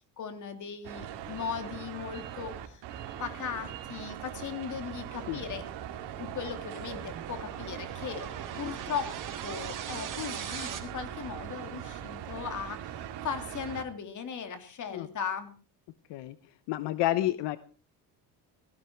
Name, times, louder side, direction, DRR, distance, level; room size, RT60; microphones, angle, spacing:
voice 1, 0.2-2.8 3.2-5.6 6.2-8.3 8.6-9.1 9.4-15.5, left 7 dB, 45° left, 8 dB, 3.2 m, -38 dB
sound 1, 0.8-13.8, right 10 dB, 75° right, 3.0 m, -41 dB
sound 2, 4.3-10.8, right 8 dB, 50° right, 3.8 m, -43 dB
voice 2, 16.7-17.6, left 15 dB, 80° left, 14 dB, 1.0 m, -29 dB
17.5 x 16.0 x 4.6 m, 0.38 s
cardioid pair, 130°, 41 cm